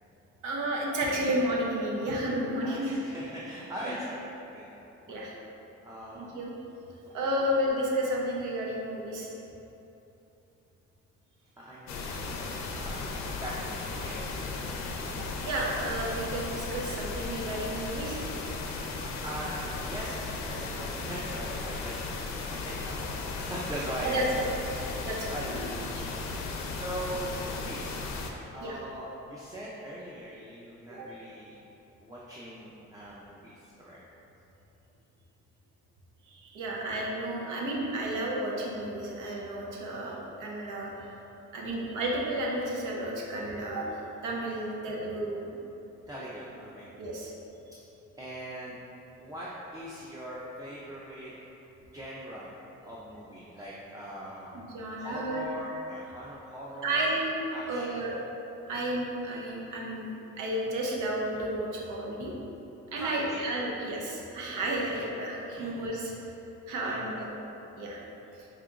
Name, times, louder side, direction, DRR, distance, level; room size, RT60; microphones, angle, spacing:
voice 1, 0.4-3.0 3.8-4.0 5.1-5.3 6.1-6.5 7.1-9.3 15.1-18.2 21.0-21.1 24.0-24.2 25.0-26.0 28.6-28.8 31.0-31.1 36.3-41.2 41.5-45.4 47.0-47.3 54.5-55.8 56.8-58.1 58.7-60.1 60.4-62.3 62.9-66.1 66.7-67.3 67.8-68.0, right 1 dB, 80° right, -2 dB, 0.7 m, -32 dB
voice 2, 2.6-4.2 4.5-4.7 5.0-5.3 5.8-6.3 7.1-7.3 11.6-14.3 18.8-24.5 24.7-25.5 26.7-28.2 28.5-31.6 32.0-34.0 44.9-45.0 46.1-46.9 48.2-48.8 49.2-51.3 51.9-52.5 52.8-54.5 55.0-57.1 57.5-58.1 63.0-63.4 64.5-64.8 65.6-65.7 66.8-67.2, right 1 dB, 10° right, -6 dB, 0.4 m, -41 dB
sound 1, 11.9-28.3, left 3 dB, 65° left, 0.5 m, -36 dB
4.8 x 2.8 x 2.4 m, 3.0 s
cardioid pair, 90°, 30 cm